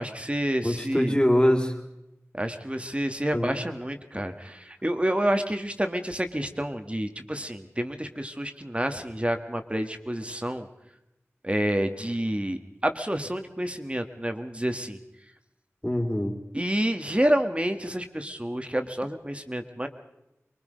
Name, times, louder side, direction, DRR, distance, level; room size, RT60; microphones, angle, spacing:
voice 1, 0.0-1.2 2.3-10.7 11.4-15.0 16.5-19.9, right 1 dB, 25° right, 7 dB, 1.8 m, -29 dB
voice 2, 0.6-1.8 3.3-3.6 15.8-16.4, equal, 20° left, 3 dB, 3.0 m, -23 dB
25.0 x 22.5 x 5.2 m, 0.88 s
wide cardioid pair, 45°, 5 cm